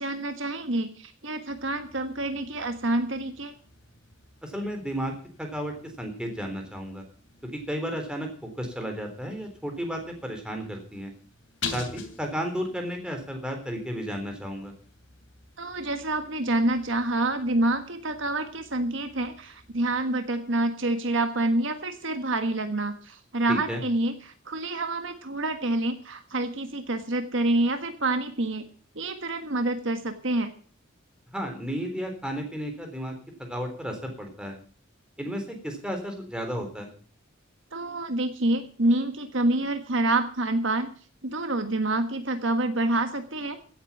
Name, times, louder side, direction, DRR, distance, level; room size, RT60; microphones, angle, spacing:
voice 1, 0.0-3.5 15.6-28.6 28.9-30.5 37.7-40.9 41.2-43.6, right 2 dB, 65° right, 8 dB, 1.5 m, -27 dB
sound 1, 1.5-20.0, left 5 dB, 60° left, 2.9 m, -46 dB
voice 2, 4.4-5.1 5.4-7.0 7.7-11.1 11.7-14.7 23.5-23.8 31.3-33.1 33.4-34.6 35.2-36.9, equal, 5° right, 3 dB, 3.6 m, -33 dB
16.5 x 8.6 x 7.2 m, 0.42 s
head